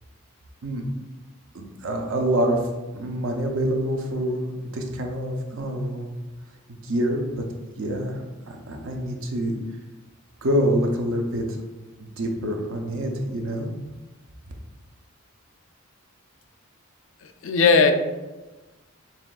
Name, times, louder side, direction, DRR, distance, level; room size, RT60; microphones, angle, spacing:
voice 1, 1.5-2.6 2.9-4.4 4.7-6.1 6.8-7.2 7.7-8.2 8.5-9.6 10.4-11.5 12.0-13.7, equal, 70° right, 2 dB, 0.6 m, -26 dB
voice 2, 17.2-17.9, left 4 dB, 60° left, 6 dB, 0.4 m, -18 dB
5.7 x 2.5 x 2.4 m, 1.2 s
head